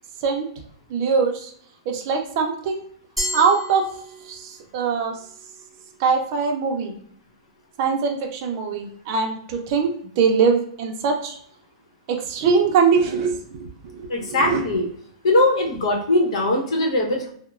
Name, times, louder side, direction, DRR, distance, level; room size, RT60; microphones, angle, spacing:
voice 1, 0.9-1.5 1.9-2.8 3.3-3.8 4.3-5.1 6.0-7.0 7.8-11.4 12.1-14.6, right 5 dB, 35° right, 3 dB, 0.5 m, -22 dB
Glass, 3.2-4.6, equal, ahead, 0.7 m, -31 dB
voice 2, 14.1-14.9 15.2-17.3, left 2 dB, 80° left, 1 dB, 0.8 m, -20 dB
2.9 x 2.0 x 2.4 m, 0.62 s
supercardioid pair, 170°, 3 cm